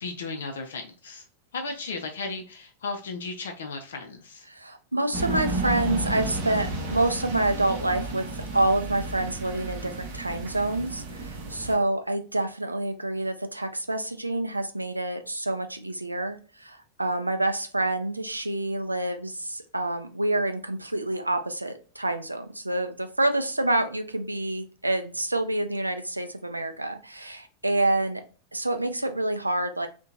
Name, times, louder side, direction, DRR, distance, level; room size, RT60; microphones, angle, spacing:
voice 1, 0.0-1.2 1.5-4.5, left 3 dB, 65° left, 4 dB, 0.3 m, -35 dB
voice 2, 4.5-28.2 28.5-29.9, right 1 dB, 85° right, 7 dB, 0.3 m, -27 dB
sound 1, 5.1-11.8, right 2 dB, 50° right, 0.7 m, -32 dB
2.7 x 2.1 x 2.4 m, 0.37 s
figure-of-eight pair, 90°, 0 cm